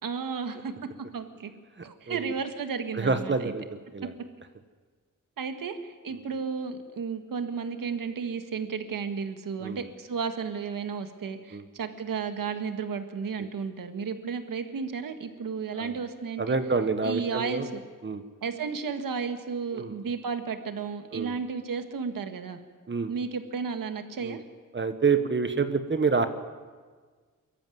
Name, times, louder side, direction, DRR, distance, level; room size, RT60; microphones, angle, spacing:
voice 1, 0.0-1.5 1.8-3.5 5.4-16.6 17.0-17.8 18.4-22.6 23.1-24.4, right 5 dB, 75° right, 7 dB, 1.8 m, -33 dB
voice 2, 2.9-3.6 3.9-4.1 9.6-9.8 11.5-11.6 15.7-15.9 16.4-17.7 18.0-18.2 19.7-19.9 21.1-21.4 22.9-23.1 24.2-24.4 24.7-26.3, right 4 dB, 35° right, 9 dB, 1.2 m, -27 dB
22.5 x 14.0 x 9.3 m, 1.5 s
wide cardioid pair, 90°, 33 cm